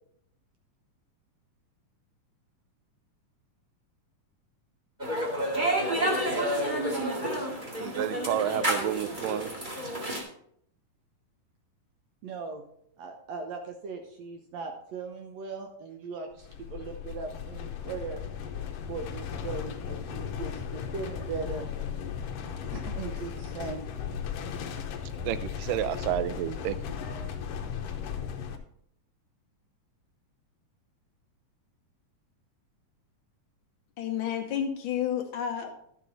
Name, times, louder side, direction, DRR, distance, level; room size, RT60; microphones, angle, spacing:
sound 1, 5.0-10.2, right 1 dB, 20° right, 1.6 m, -29 dB
voice 1, 7.8-9.5 25.2-26.9, right 12 dB, 90° right, 2.2 m, -30 dB
voice 2, 12.2-12.6 13.0-18.2 18.9-21.7 22.7-23.8, right 4 dB, 65° right, 1.8 m, -38 dB
sound 2, 16.3-28.6, left 7 dB, 70° left, 1.6 m, -36 dB
voice 3, 34.0-35.7, left 9 dB, 90° left, 1.1 m, -30 dB
11.5 x 7.6 x 4.1 m
omnidirectional pair, 3.7 m